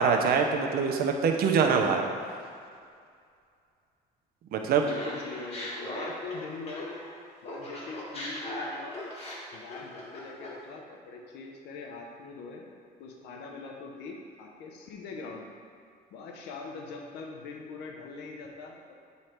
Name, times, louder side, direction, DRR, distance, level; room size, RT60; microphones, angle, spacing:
voice 1, 0.0-2.0 4.5-4.9, right 6 dB, 65° right, 3 dB, 0.7 m, -24 dB
voice 2, 4.8-7.0 7.4-9.0 9.5-12.7 13.0-15.5 16.1-18.9, left 4 dB, 85° left, 1 dB, 0.8 m, -42 dB
Laughter, 4.9-7.1 7.4-10.6, left 1 dB, 40° left, 1.6 m, -39 dB
8.1 x 3.2 x 4.5 m, 2.3 s
cardioid pair, 110°, 17 cm